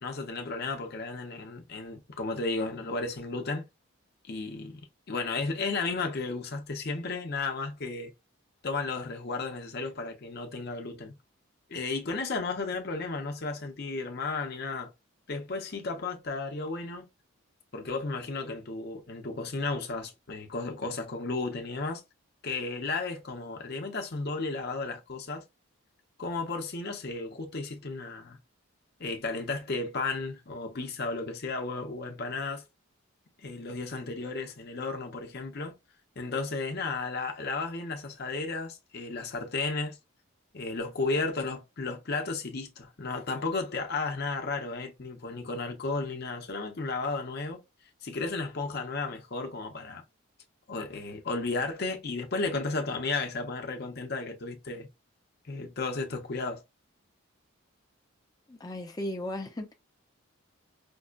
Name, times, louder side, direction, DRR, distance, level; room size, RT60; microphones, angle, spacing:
voice 1, 0.0-3.7 4.2-4.8 5.1-8.1 8.6-11.1 11.7-14.9 15.3-17.0 17.7-22.0 22.4-25.4 26.2-28.4 29.0-32.6 33.4-35.7 36.2-40.0 40.5-47.6 48.0-50.0 50.7-54.9 55.5-56.6, left 3 dB, 45° left, 0.7 m, -33 dB
voice 2, 58.5-59.7, left 1 dB, 15° left, 0.5 m, -36 dB
5.2 x 2.1 x 2.4 m
head